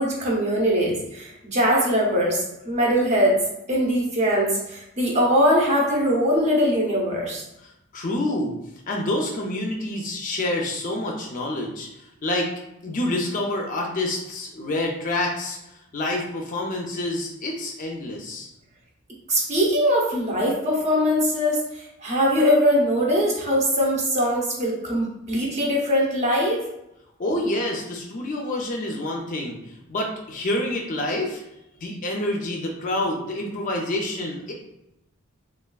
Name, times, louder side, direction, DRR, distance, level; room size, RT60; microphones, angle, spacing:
voice 1, 0.0-3.3 3.7-7.4 19.3-26.7, equal, 35° right, -2 dB, 0.7 m, -21 dB
voice 2, 7.9-8.5 8.9-11.9 12.2-12.5 12.8-15.6 15.9-18.5 27.2-29.6 29.9-31.4 31.8-34.5, left 1 dB, 40° left, 0 dB, 0.4 m, -27 dB
3.3 x 2.3 x 2.2 m, 0.87 s
head